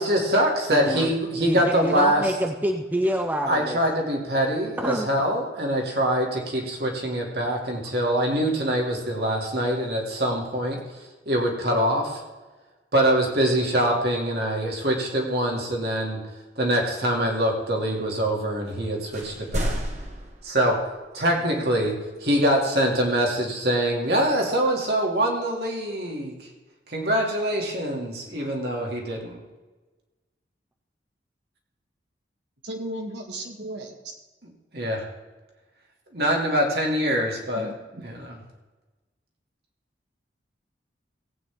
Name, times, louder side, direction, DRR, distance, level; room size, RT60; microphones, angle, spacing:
voice 1, 0.0-2.3 3.5-10.8 11.3-12.2 12.9-16.2 16.6-19.8 20.4-20.8 21.1-22.0 22.2-26.4 26.9-29.4 34.7-35.0 36.1-37.7 38.0-38.3, right 1 dB, 60° right, 0 dB, 2.5 m, -24 dB
voice 2, 0.7-1.1 1.4-3.8 4.8-5.1, equal, 10° right, 4 dB, 0.6 m, -27 dB
sound 1, 18.7-18.8 19.1-21.2, equal, 40° right, 1.5 m, -32 dB
voice 3, 32.6-34.2 37.5-38.0, right 1 dB, 75° right, 2 dB, 1.9 m, -35 dB
17.5 x 9.0 x 3.6 m, 1.2 s
head